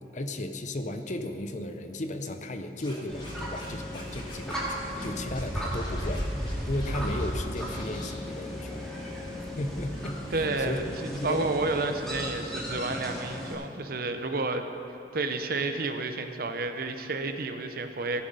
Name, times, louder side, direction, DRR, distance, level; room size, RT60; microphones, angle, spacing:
voice 1, 0.1-6.2 6.7-8.8 9.5-10.8 11.1-11.5, left 1 dB, 45° left, 7 dB, 0.7 m, -35 dB
Scratching (performance technique), 2.8-3.7 3.9-4.7 5.0-5.1 5.3-7.3 7.6-8.1, left 1 dB, 25° left, 1.9 m, -46 dB
sound 1, 3.1-13.5, equal, 5° left, 2.4 m, -35 dB
voice 2, 10.3-10.9 11.2-14.7 15.1-18.2, right 3 dB, 55° right, 7 dB, 0.8 m, -30 dB
17.5 x 7.2 x 5.4 m, 2.8 s
head